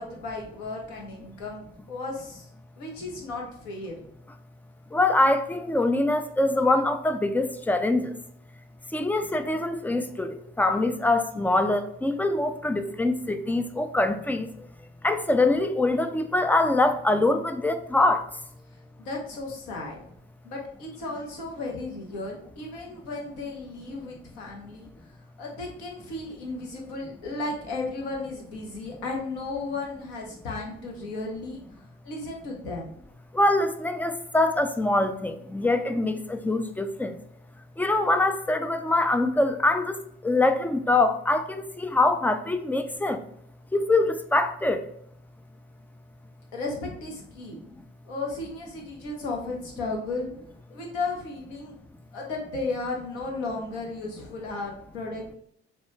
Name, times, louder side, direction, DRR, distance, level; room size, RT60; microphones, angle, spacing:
voice 1, 0.0-2.5 2.8-4.0 18.7-20.0 20.4-24.9 25.4-33.0 46.5-47.6 48.0-50.3 50.7-51.8 52.1-55.4, left 3 dB, 65° left, 1.1 m, -34 dB
voice 2, 4.9-8.1 8.9-14.7 15.0-18.3 33.3-37.2 37.8-43.2 43.7-44.9, left 2 dB, 5° left, 0.3 m, -24 dB
6.5 x 2.3 x 3.1 m
figure-of-eight pair, 50°, 31 cm